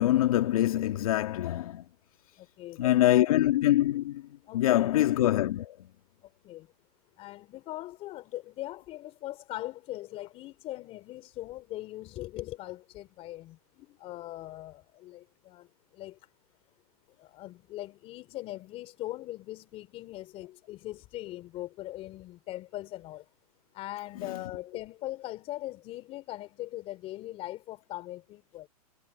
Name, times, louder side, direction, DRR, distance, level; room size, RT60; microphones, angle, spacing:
voice 1, 0.0-1.8 2.8-4.2 4.5-5.9, left 14 dB, 60° left, 2.3 m, -24 dB
voice 2, 2.4-3.4 4.5-5.0 6.2-6.7 7.2-16.2 17.2-23.3 23.7-28.7, left 16 dB, 30° left, 3.9 m, -41 dB
hypercardioid pair, 140°, 20 cm